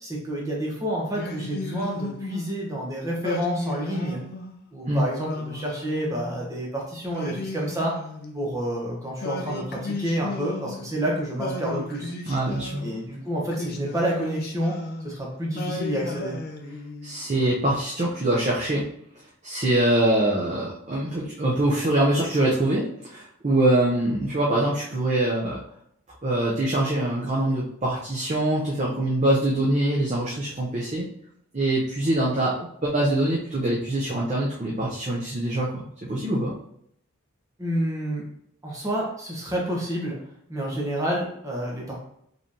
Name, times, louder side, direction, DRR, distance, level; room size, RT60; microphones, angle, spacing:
voice 1, 0.0-4.2 4.7-7.9 8.3-12.1 12.8-14.7 15.0-16.3 37.6-38.2 38.6-40.2 40.5-42.0, right 1 dB, 15° right, -3 dB, 1.1 m, -29 dB
Singing, 1.1-2.6 3.2-4.6 5.2-6.5 7.1-8.6 9.2-11.0 11.4-13.0 13.5-15.2 15.5-17.2, left 2 dB, 45° left, 0.5 m, -34 dB
voice 2, 12.3-12.9 17.0-18.9 19.4-25.6 26.2-31.1 31.5-36.5, right 1 dB, 35° right, -4 dB, 0.6 m, -24 dB
5.1 x 3.2 x 2.8 m, 0.71 s
head